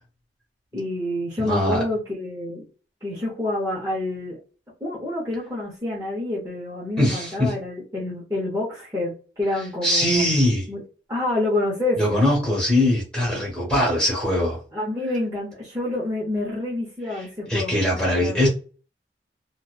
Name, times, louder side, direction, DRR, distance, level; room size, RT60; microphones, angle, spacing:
voice 1, 0.7-2.7 3.0-4.4 4.8-10.2 10.7-10.8 11.1-12.0 14.7-18.5, left 2 dB, 15° right, 0.6 m, -28 dB
voice 2, 1.4-1.8 7.0-7.5 9.8-10.6 12.0-14.6 17.5-18.5, left 1 dB, 5° left, 1.2 m, -21 dB
2.7 x 2.2 x 2.3 m
head